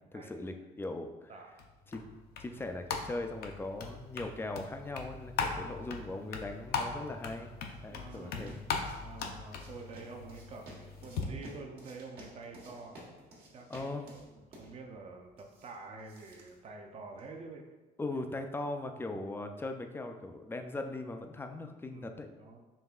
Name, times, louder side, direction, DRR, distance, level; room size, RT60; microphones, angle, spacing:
voice 1, 0.0-1.3 1.9-2.1 2.4-7.5 7.8-8.6 13.7-14.0 18.0-22.3, left 2 dB, 15° left, 5 dB, 0.4 m, -39 dB
sound 1, 1.6-11.2, left 5 dB, 65° left, 0.5 m, -40 dB
voice 2, 5.5-5.8 7.8-13.0 13.5-17.7 21.9-22.6, right 3 dB, 40° right, 3 dB, 0.6 m, -48 dB
sound 2, 7.7-17.4, right 1 dB, 65° right, 1.3 m, -55 dB
5.3 x 3.3 x 2.3 m, 1.2 s
cardioid pair, 110°, 17 cm